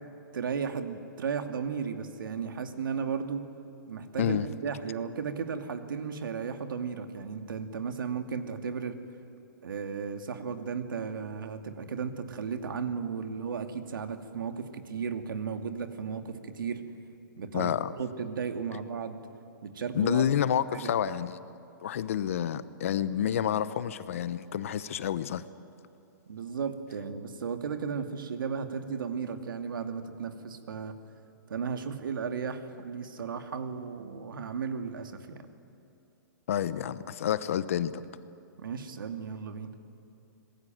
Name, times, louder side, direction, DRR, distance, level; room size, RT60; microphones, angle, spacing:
voice 1, 0.3-3.5 3.9-9.0 9.6-16.8 17.4-19.2 19.6-20.3 20.7-20.9 26.3-31.0 31.5-35.5 38.6-39.7, right 6 dB, 80° right, 2.5 m, -35 dB
voice 2, 17.5-17.9 19.9-21.5 21.8-25.4 36.5-38.0, left 9 dB, 40° left, 0.9 m, -29 dB
26.0 x 21.0 x 9.3 m
hypercardioid pair, 180°, 11 cm